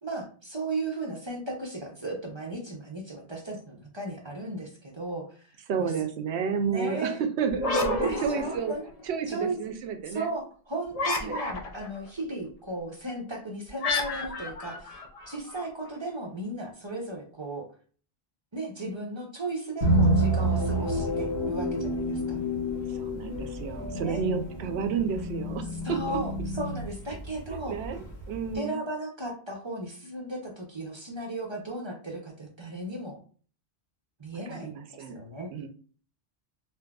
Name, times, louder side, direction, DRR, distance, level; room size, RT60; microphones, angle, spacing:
voice 1, 0.0-5.9 6.7-7.2 8.0-8.9 9.3-9.6 10.1-15.0 15.3-17.7 18.5-22.4 23.9-24.3 25.8-27.8 28.5-33.2 34.2-35.5, right 2 dB, 30° right, 0 dB, 0.6 m, -36 dB
voice 2, 5.7-8.7 9.1-10.3 11.2-11.4 22.9-26.2 27.5-28.8 34.5-35.2 35.5-35.7, right 6 dB, 80° right, 7 dB, 0.8 m, -31 dB
sound 1, 7.5-9.1 10.9-12.0 13.8-15.7, left 3 dB, 45° left, 0.5 m, -31 dB
sound 2, 19.8-28.6, right 1 dB, 70° left, 1.6 m, -29 dB
3.6 x 2.5 x 2.3 m, 0.42 s
omnidirectional pair, 1.1 m